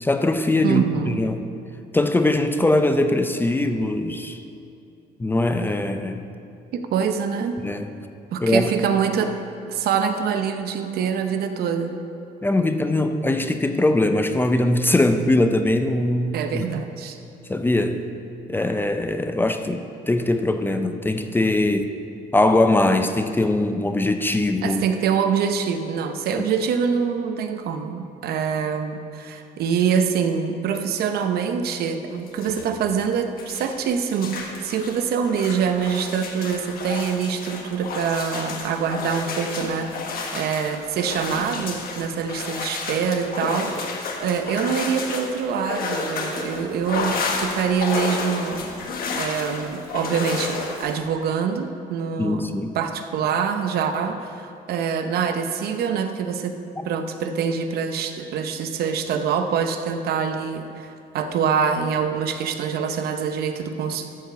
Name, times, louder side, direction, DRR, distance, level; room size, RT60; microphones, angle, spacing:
voice 1, 0.0-1.4 1.9-4.4 5.2-6.2 7.6-7.9 8.4-8.7 12.4-16.6 17.5-18.0 18.5-21.9 22.3-24.8 26.4-26.5 52.2-52.8 56.8-56.9, left 2 dB, 10° left, 7 dB, 0.5 m, -21 dB
voice 2, 0.6-1.2 6.7-7.6 8.3-9.4 9.7-11.9 16.3-17.2 24.6-43.9 44.2-48.6 49.1-52.5 52.7-56.6 56.8-64.1, right 6 dB, 65° right, 7 dB, 0.8 m, -25 dB
sound 1, 32.3-33.1 33.4-51.0, left 4 dB, 60° left, 1.3 m, -31 dB
13.5 x 4.7 x 6.8 m, 2.6 s
cardioid pair, 110°, 17 cm